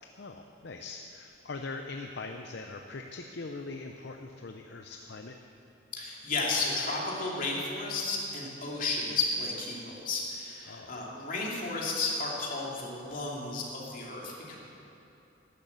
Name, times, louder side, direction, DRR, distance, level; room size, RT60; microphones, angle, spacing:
voice 1, 0.0-5.4 10.7-11.0, left 3 dB, 65° left, 4 dB, 0.7 m, -42 dB
voice 2, 5.9-14.6, left 3 dB, 50° left, -3 dB, 2.8 m, -33 dB
12.0 x 11.0 x 8.1 m, 2.9 s
head